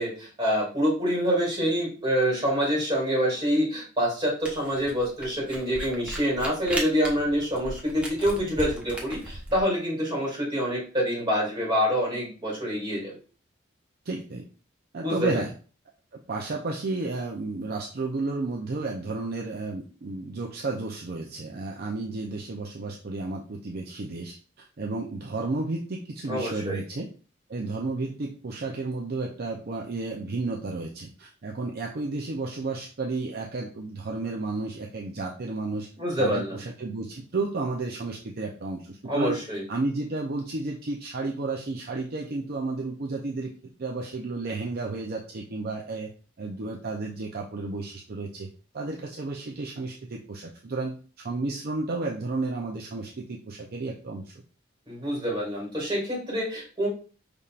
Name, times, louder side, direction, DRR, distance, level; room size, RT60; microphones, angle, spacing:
voice 1, 0.0-13.1 15.0-15.4 26.3-26.8 36.0-36.6 39.1-39.6 54.9-56.9, equal, 25° right, -5 dB, 2.3 m, -26 dB
Camera, 4.4-9.6, right 1 dB, 5° right, 0.8 m, -36 dB
voice 2, 14.1-14.4 14.9-15.5 16.1-27.1 27.5-35.9 36.2-39.4 39.7-43.5 43.8-46.1 46.4-48.5 48.7-54.3, right 3 dB, 50° right, 0 dB, 0.5 m, -32 dB
5.6 x 3.5 x 2.4 m, 0.38 s
head